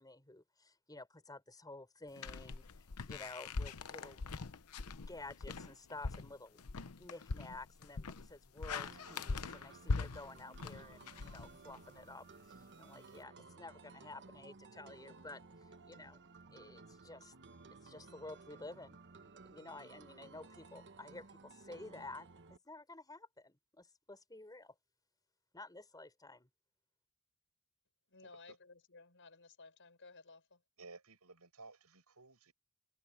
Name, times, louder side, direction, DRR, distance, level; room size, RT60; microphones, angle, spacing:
voice 1, 0.0-4.2 4.9-6.6 7.0-15.4 15.8-16.2 16.5-17.3 17.8-24.7 25.5-26.5, left 2 dB, 15° left, 6.3 m, -52 dB
sound 1, 2.2-12.0, left 4 dB, 80° left, 0.8 m, -42 dB
sound 2, 8.9-22.6, right 4 dB, 55° right, 1.1 m, -57 dB
voice 2, 28.1-30.6, left 3 dB, 60° left, 6.4 m, -57 dB
voice 3, 30.8-32.5, right 3 dB, 85° right, 6.9 m, -56 dB
head